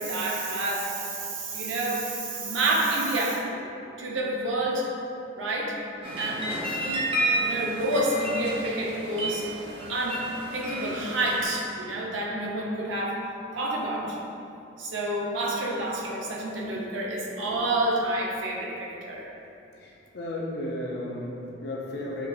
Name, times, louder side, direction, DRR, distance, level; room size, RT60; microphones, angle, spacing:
voice 1, 0.0-3.4 4.0-4.9 5.4-5.7 6.2-7.1 7.4-9.4 9.9-10.2 10.5-13.2 13.5-14.2 14.8-19.3, right 1 dB, 80° right, -3 dB, 0.5 m, -29 dB
sound 1, 6.0-11.4, right 1 dB, 30° right, 0.5 m, -31 dB
voice 2, 19.8-22.3, left 1 dB, 55° left, -2 dB, 0.5 m, -34 dB
4.4 x 2.5 x 2.3 m, 2.8 s
head